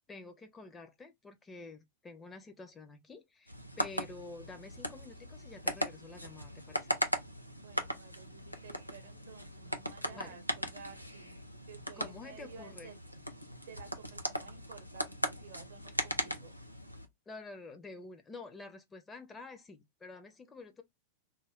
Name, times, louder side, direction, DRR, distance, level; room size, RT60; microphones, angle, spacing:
voice 1, 0.1-6.9 10.1-10.4 11.9-12.9 17.3-20.8, left 3 dB, 15° left, 0.6 m, -49 dB
sound 1, 3.5-17.1, equal, 90° left, 0.4 m, -39 dB
voice 2, 7.6-11.4 11.7-13.0 13.6-16.5, right 6 dB, 60° right, 0.7 m, -53 dB
2.3 x 2.1 x 3.4 m
figure-of-eight pair, 90°, 0 cm